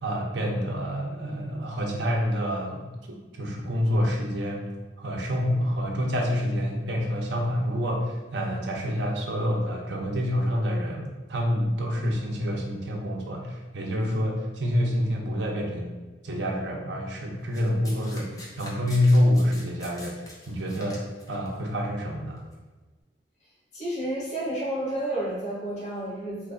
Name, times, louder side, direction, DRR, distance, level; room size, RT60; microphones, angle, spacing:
voice 1, 0.0-4.7 5.0-15.9 16.2-21.0 21.3-22.4, equal, 70° right, 0 dB, 0.7 m, -27 dB
Domestic sounds home sounds, 17.5-21.5 22.4-22.5, left 1 dB, 20° left, 0.6 m, -45 dB
voice 2, 23.7-26.5, right 1 dB, 40° left, -8 dB, 1.4 m, -31 dB
3.1 x 2.4 x 3.7 m, 1.2 s
head